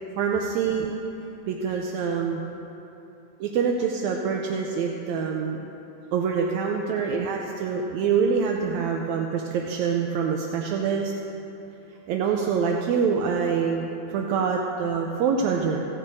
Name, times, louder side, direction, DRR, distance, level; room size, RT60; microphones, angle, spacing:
voice 1, 0.2-0.9 1.5-2.4 3.4-5.6 6.1-11.1 12.1-15.8, right 6 dB, 80° right, 1 dB, 1.8 m, -25 dB
16.5 x 12.5 x 2.7 m, 3.0 s
omnidirectional pair, 3.5 m